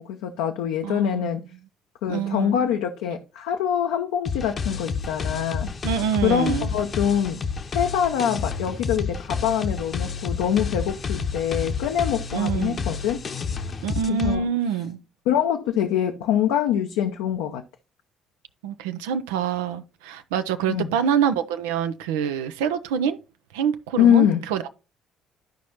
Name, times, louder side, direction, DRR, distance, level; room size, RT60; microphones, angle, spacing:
voice 1, 0.0-1.4 2.0-5.7 6.2-7.4 7.7-13.2 14.1-14.5 15.3-17.6 20.7-20.9 24.0-24.4, left 9 dB, 70° left, 0.6 m, -24 dB
voice 2, 0.8-1.3 2.1-2.7 5.8-6.7 12.3-12.9 13.8-15.0 18.6-23.2 23.5-24.7, right 8 dB, 75° right, 0.5 m, -26 dB
sound 1, 4.2-14.3, left 5 dB, 40° left, 0.8 m, -30 dB
12.5 x 5.1 x 2.8 m
figure-of-eight pair, 50°, 0 cm